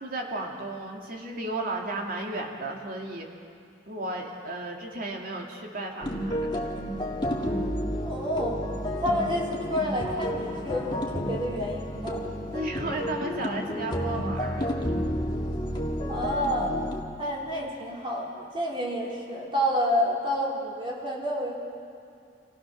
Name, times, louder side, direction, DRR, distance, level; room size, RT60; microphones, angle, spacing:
voice 1, 0.0-3.3 3.9-6.7 12.5-14.7, right 2 dB, 55° right, 0 dB, 2.5 m, -34 dB
sound 1, 6.0-17.0, equal, 25° left, 1.9 m, -31 dB
voice 2, 8.0-8.6 8.9-12.2 16.1-16.7 17.2-21.5, equal, 30° right, -4 dB, 3.7 m, -29 dB
26.0 x 16.0 x 6.4 m, 2.4 s
head